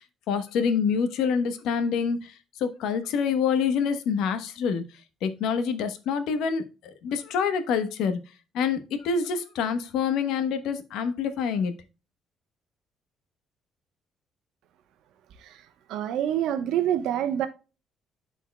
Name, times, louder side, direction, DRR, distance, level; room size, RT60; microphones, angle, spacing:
voice 1, 0.0-4.8 5.2-8.2 8.5-11.7, left 6 dB, 85° left, 1.0 m, -26 dB
voice 2, 15.9-17.5, right 10 dB, 85° right, 1.0 m, -26 dB
12.0 x 4.5 x 2.2 m
cardioid pair, 150°, 0 cm